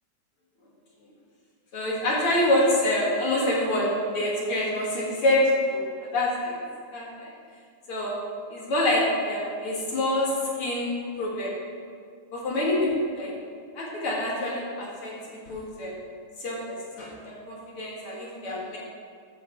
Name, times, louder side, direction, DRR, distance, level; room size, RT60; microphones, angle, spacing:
voice 1, 1.7-5.9 6.1-6.6 6.9-7.3 7.9-8.1 8.5-10.3 10.6-11.5 12.3-13.3 13.8-15.1 15.5-15.9 16.4-18.8, left 1 dB, 45° left, -4 dB, 2.1 m, -26 dB
14.0 x 6.3 x 4.6 m, 2.1 s
omnidirectional pair, 4.3 m